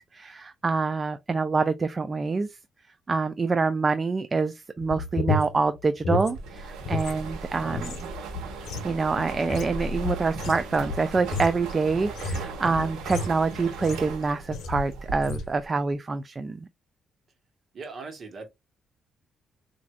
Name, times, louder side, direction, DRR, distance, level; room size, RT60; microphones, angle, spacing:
voice 1, 0.1-2.6 3.1-8.1 8.8-16.7, right 4 dB, 30° right, 0.3 m, -26 dB
sound 1, 4.8-7.2 7.5-14.2 14.5-14.9 15.2-15.5, left 3 dB, 75° left, 0.6 m, -33 dB
sound 2, 6.3-15.7, right 3 dB, 85° right, 0.8 m, -37 dB
voice 2, 12.3-12.7 17.7-18.5, right 4 dB, 50° right, 1.3 m, -40 dB
4.1 x 2.6 x 2.3 m
cardioid pair, 90°, 0 cm